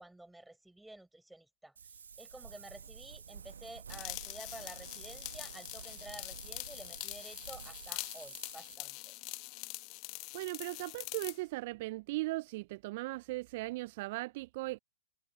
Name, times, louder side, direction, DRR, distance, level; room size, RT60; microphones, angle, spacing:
voice 1, 0.0-1.9 2.2-9.1, right 1 dB, 5° right, 6.5 m, -51 dB
Wind, 1.8-8.8, right 7 dB, 70° right, 1.5 m, -50 dB
sound 1, 3.9-11.4, left 28 dB, 35° left, 1.2 m, -44 dB
voice 2, 10.3-14.8, right 20 dB, 45° right, 0.4 m, -38 dB
figure-of-eight pair, 115°, 0 cm